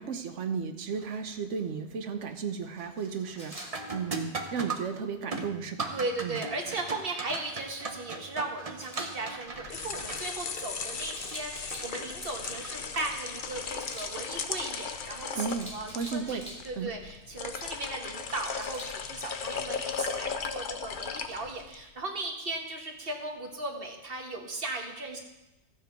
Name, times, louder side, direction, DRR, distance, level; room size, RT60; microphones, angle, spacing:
voice 1, 0.0-3.6 3.9-6.0 6.2-6.4 15.4-16.5 16.7-16.9, right 6 dB, 90° right, 6 dB, 1.2 m, -34 dB
sound 1, 1.0-1.3 1.8-2.2 2.5-16.0 18.6-18.7 19.5-19.7, right 3 dB, 35° right, 0.9 m, -41 dB
Camera, 3.4-3.7 8.8-9.1 11.1-11.9 13.8-14.1 15.4-16.6 18.6-18.9, equal, 5° left, 2.6 m, -44 dB
voice 2, 5.9-25.2, right 2 dB, 55° right, 2 dB, 1.7 m, -37 dB
sound 2, 9.5-21.8, left 6 dB, 50° left, 0.8 m, -37 dB
14.5 x 7.7 x 4.6 m, 1.0 s
omnidirectional pair, 1.2 m